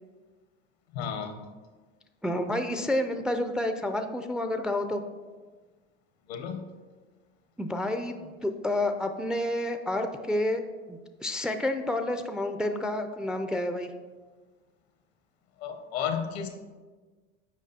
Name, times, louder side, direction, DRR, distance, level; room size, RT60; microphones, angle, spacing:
voice 1, 0.9-1.5 6.3-6.6 15.6-16.5, left 7 dB, 80° left, 6 dB, 0.9 m, -33 dB
voice 2, 2.2-5.0 7.6-10.6 10.9-13.9, left 1 dB, 5° right, 7 dB, 0.3 m, -29 dB
7.5 x 5.1 x 2.7 m, 1.4 s
hypercardioid pair, 75°, 32 cm